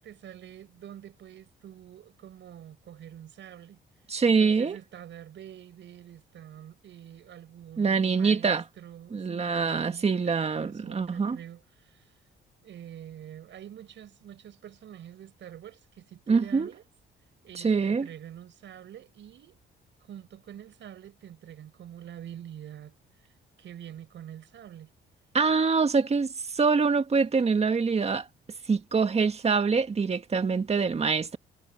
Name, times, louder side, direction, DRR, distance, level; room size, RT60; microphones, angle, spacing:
voice 1, 0.0-3.8 4.3-12.1 12.6-16.8 17.4-19.6 20.0-23.0 23.6-24.9, right 10 dB, 70° right, 6.0 m, -46 dB
voice 2, 4.1-4.8 7.8-8.6 9.1-11.4 16.3-16.7 17.6-18.1 25.3-28.3 28.7-31.4, right 5 dB, 30° right, 1.8 m, -25 dB
cardioid pair, 90°, 20 cm